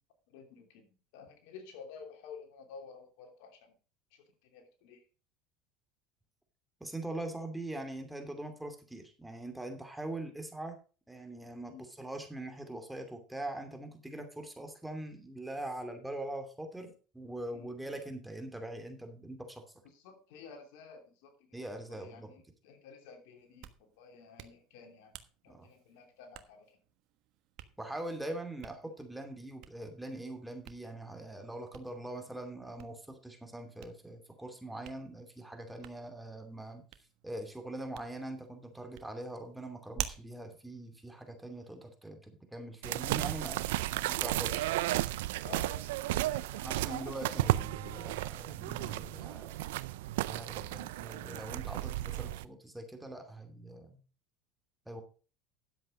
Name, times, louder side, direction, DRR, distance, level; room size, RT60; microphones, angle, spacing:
voice 1, 0.3-3.7 4.1-5.1 11.6-11.9 17.5-17.7 19.9-25.1 25.4-26.8 35.8-36.0 45.4-47.5 51.8-52.4, left 5 dB, 75° left, 5 dB, 2.9 m, -52 dB
voice 2, 6.8-10.8 11.1-19.6 21.5-22.3 25.5-25.7 27.8-36.8 37.2-44.7 46.6-49.6 50.3-54.0 54.9-55.0, right 1 dB, 5° right, 5 dB, 2.7 m, -42 dB
Hands, 23.4-41.9, right 13 dB, 60° right, 1.3 m, -50 dB
sound 1, 42.8-52.4, right 16 dB, 85° right, 0.5 m, -34 dB
10.5 x 7.8 x 5.1 m, 0.37 s
supercardioid pair, 100°, 0 cm